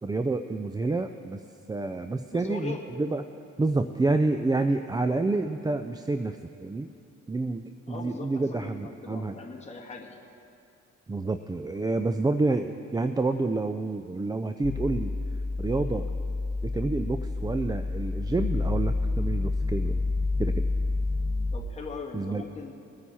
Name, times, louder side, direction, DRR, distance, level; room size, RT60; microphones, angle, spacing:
voice 1, 0.0-1.4 1.7-3.2 3.6-6.9 7.3-9.4 11.1-15.1 15.6-16.1 16.6-20.0 20.4-20.7 22.1-22.4, right 3 dB, 15° right, 8 dB, 0.4 m, -28 dB
voice 2, 2.3-2.8 7.9-10.2 21.5-22.7, left 4 dB, 20° left, -1 dB, 1.9 m, -40 dB
sound 1, 14.6-21.6, left 3 dB, 35° left, 0.9 m, -29 dB
22.0 x 9.1 x 4.3 m, 2.6 s
cardioid pair, 90°, 30 cm